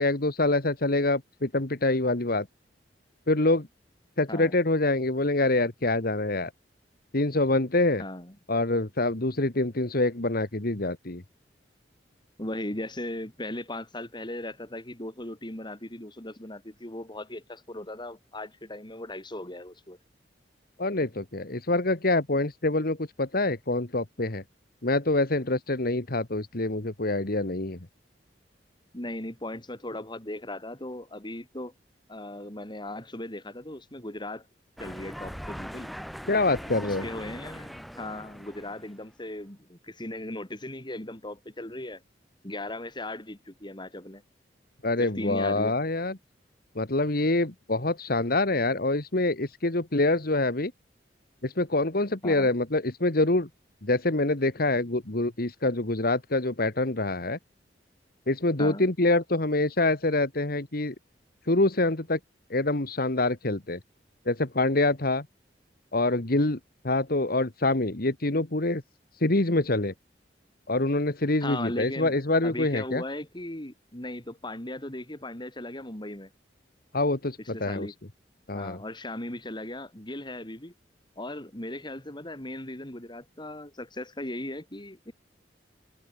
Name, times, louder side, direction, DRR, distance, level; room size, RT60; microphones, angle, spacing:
voice 1, 0.0-2.5 3.3-3.7 4.2-6.5 7.1-8.0 8.5-11.2 20.8-24.4 24.8-27.8 36.3-37.0 44.8-46.1 46.8-50.7 51.4-53.5 53.8-57.4 58.3-60.9 61.5-62.2 62.5-63.8 64.3-65.3 65.9-66.6 66.8-68.8 69.2-69.9 70.7-73.0 76.9-77.9 78.5-78.8, left 2 dB, 55° left, 1.9 m, -25 dB
voice 2, 4.3-4.6 8.0-8.4 12.4-20.0 28.9-31.7 32.1-34.5 34.8-35.9 36.8-42.0 42.4-44.2 45.0-45.7 52.2-52.5 58.6-58.9 71.4-72.1 72.4-76.3 77.5-77.9 78.5-80.7 81.2-85.1, left 1 dB, 25° left, 4.3 m, -37 dB
sound 1, 34.8-39.0, equal, ahead, 5.7 m, -41 dB
head